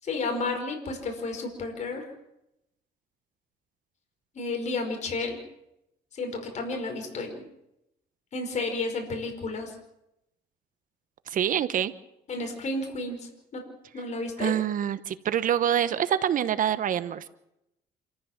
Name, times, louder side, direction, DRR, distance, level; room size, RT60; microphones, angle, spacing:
voice 1, 0.0-2.1 4.3-5.4 6.1-7.4 8.3-9.7 12.3-13.6 13.9-14.5, left 3 dB, 45° left, 4 dB, 5.2 m, -32 dB
voice 2, 11.3-11.9 14.4-17.2, right 9 dB, 50° right, 13 dB, 1.1 m, -26 dB
27.5 x 14.5 x 7.4 m, 0.85 s
cardioid pair, 110°, 17 cm